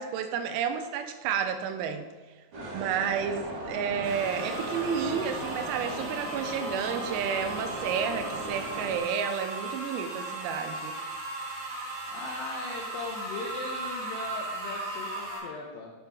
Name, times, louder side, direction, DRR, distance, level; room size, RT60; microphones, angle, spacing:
voice 1, 0.0-2.1 2.7-10.9, right 7 dB, 90° right, 8 dB, 3.4 m, -31 dB
Ambience Dubai Mall, 2.5-9.0, right 1 dB, 55° right, 1.5 m, -37 dB
sound 1, 4.0-15.4, right 2 dB, 40° right, 2.5 m, -37 dB
voice 2, 12.1-15.9, left 3 dB, 85° left, -2 dB, 2.5 m, -39 dB
8.3 x 8.2 x 3.5 m, 1.3 s
omnidirectional pair, 5.9 m